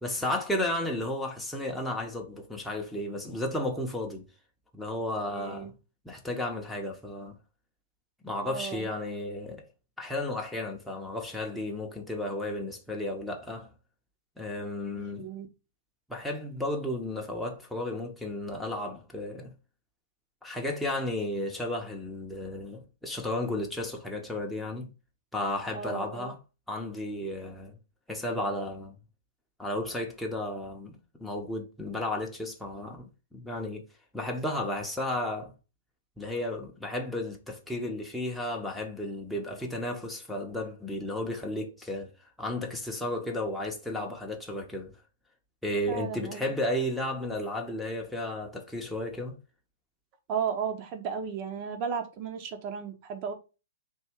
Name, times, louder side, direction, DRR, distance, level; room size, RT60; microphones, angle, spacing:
voice 1, 0.0-4.3 4.7-5.7 6.0-7.4 8.2-9.6 10.0-13.7 14.4-15.3 16.1-19.5 20.4-24.9 25.3-26.4 26.7-27.8 28.1-29.0 29.6-33.8 34.1-35.5 36.2-42.1 42.4-44.9 45.6-49.4, left 1 dB, ahead, 0.8 m, -33 dB
voice 2, 5.3-5.7 8.4-8.9 14.9-15.5 25.7-26.3 45.9-46.5 50.3-53.3, right 6 dB, 40° right, 0.9 m, -34 dB
3.5 x 2.7 x 4.4 m
hypercardioid pair, 120°, 0 cm